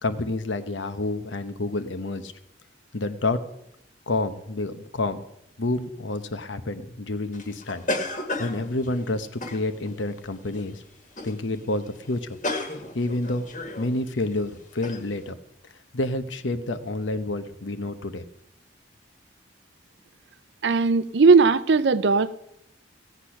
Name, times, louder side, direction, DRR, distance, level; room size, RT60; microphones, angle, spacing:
voice 1, 0.0-2.3 2.9-3.4 4.1-5.2 5.6-7.9 8.4-10.8 11.2-12.4 12.9-13.5 13.8-15.4 15.9-18.2, left 2 dB, 80° left, 10 dB, 1.0 m, -29 dB
sound 1, 7.3-10.0 10.5-10.8 11.1-11.4 11.7-11.8 12.0-13.9 14.3-14.4 14.8-15.0, left 2 dB, 40° left, 1.7 m, -33 dB
voice 2, 20.6-22.4, right 4 dB, 65° right, 15 dB, 0.6 m, -18 dB
16.5 x 8.3 x 5.9 m, 0.79 s
head